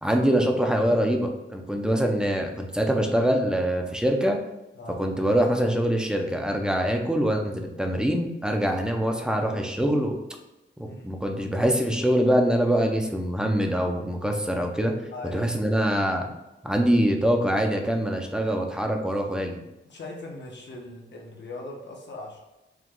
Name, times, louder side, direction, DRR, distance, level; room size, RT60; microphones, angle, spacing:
voice 1, 0.0-4.4 5.0-10.2 10.8-14.9 15.3-16.3 16.6-19.6, equal, 5° right, 2 dB, 0.5 m, -24 dB
voice 2, 4.7-5.1 10.8-11.1 15.1-15.6 19.9-22.4, left 2 dB, 60° left, -1 dB, 1.0 m, -40 dB
4.8 x 2.3 x 3.7 m, 0.99 s
wide cardioid pair, 140°, 20 cm